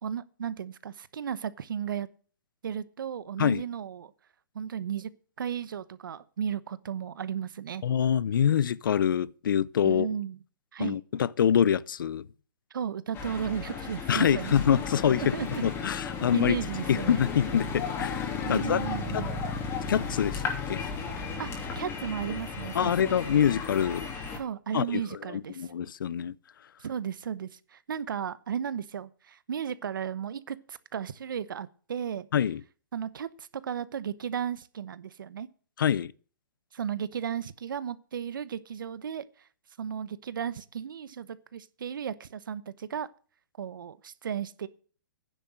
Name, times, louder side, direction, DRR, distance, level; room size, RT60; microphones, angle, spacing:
voice 1, 0.0-2.1 2.6-4.1 4.5-5.1 5.4-7.8 9.8-10.4 10.7-11.0 12.7-14.5 15.2-15.6 16.2-17.2 18.4-19.3 21.4-23.3 24.3-25.7 26.8-32.3 32.9-35.5 36.7-39.2 39.8-43.1 43.6-44.7, right 8 dB, 75° right, 0.9 m, -34 dB
voice 2, 7.8-10.1 10.8-12.3 14.1-15.4 15.6-16.6 16.9-18.8 19.1-19.2 19.9-20.9 22.7-24.1 24.7-25.0 25.3-26.3 32.3-32.6 35.8-36.1, left 8 dB, 75° left, 0.6 m, -25 dB
sound 1, 13.1-24.4, left 5 dB, 20° left, 2.8 m, -34 dB
10.0 x 7.3 x 8.0 m
hypercardioid pair, 145°, 11 cm